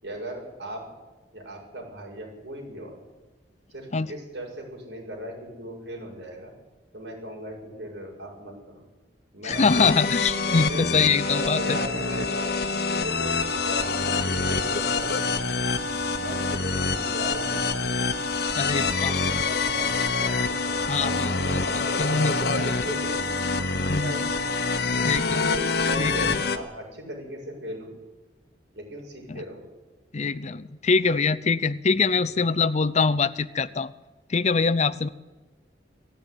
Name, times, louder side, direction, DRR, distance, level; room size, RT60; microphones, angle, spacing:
voice 1, 0.0-0.9 1.3-3.0 3.7-6.5 6.9-8.8 9.3-10.2 10.5-10.9 11.2-13.9 14.2-15.7 16.2-18.1 18.8-20.4 21.0-23.2 24.0-24.5 25.0-25.2 25.5-27.9 28.7-29.6 30.3-30.5 32.1-32.2, right 1 dB, 75° right, 0 dB, 7.3 m, -38 dB
voice 2, 9.4-11.8 18.5-19.2 20.8-22.3 22.6-22.7 23.9-24.1 25.0-25.6 26.0-26.3 29.3-29.4 30.1-33.9 34.3-35.1, left 4 dB, 40° left, 18 dB, 0.6 m, -24 dB
sound 1, 9.5-26.6, left 4 dB, 65° left, 1.4 m, -26 dB
17.5 x 14.5 x 10.0 m, 1.2 s
head